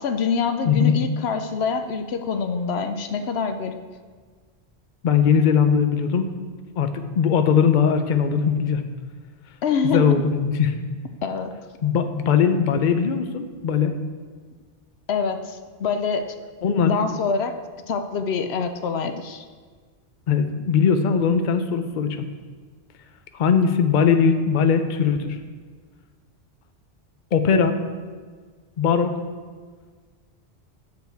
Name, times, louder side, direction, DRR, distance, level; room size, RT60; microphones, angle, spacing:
voice 1, 0.0-3.8 9.6-10.1 11.2-11.5 15.1-16.3 16.8-17.6 17.9-19.4, left 5 dB, 75° left, 7 dB, 0.9 m, -25 dB
voice 2, 5.0-6.3 6.8-8.8 9.9-10.7 11.8-13.9 16.6-16.9 20.3-22.2 23.3-25.4 27.3-27.8 28.8-29.2, left 6 dB, 55° left, 7 dB, 0.7 m, -20 dB
10.5 x 7.1 x 4.6 m, 1.5 s
omnidirectional pair, 1.1 m